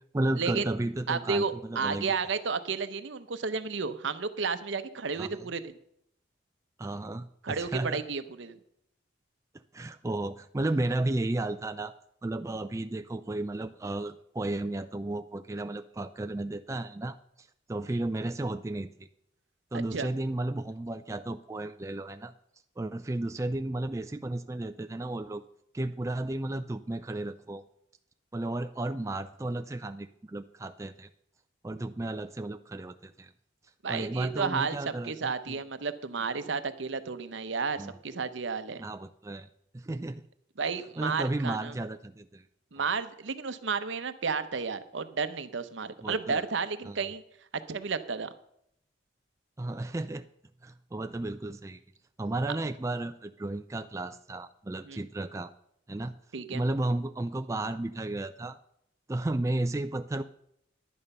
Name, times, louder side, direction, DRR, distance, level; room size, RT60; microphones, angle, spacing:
voice 1, 0.1-2.1 5.2-5.3 6.8-8.0 9.7-11.9 12.2-19.1 19.7-22.3 22.8-25.4 25.7-27.6 28.3-31.1 31.6-33.3 33.9-35.6 37.8-38.0 38.8-39.5 39.7-40.3 41.0-42.4 42.8-42.9 46.0-46.4 46.9-47.0 49.6-50.2 50.6-51.8 52.2-55.5 55.9-56.1 56.5-58.6 59.1-60.2, right 2 dB, 15° right, 9 dB, 0.3 m, -33 dB
voice 2, 1.1-5.7 7.4-8.6 19.9-20.1 33.8-34.8 35.0-38.8 40.6-41.7 42.7-47.2 47.7-48.3 54.8-55.0 56.3-56.6, right 5 dB, 70° right, 11 dB, 0.8 m, -32 dB
11.0 x 9.0 x 5.4 m, 0.74 s
head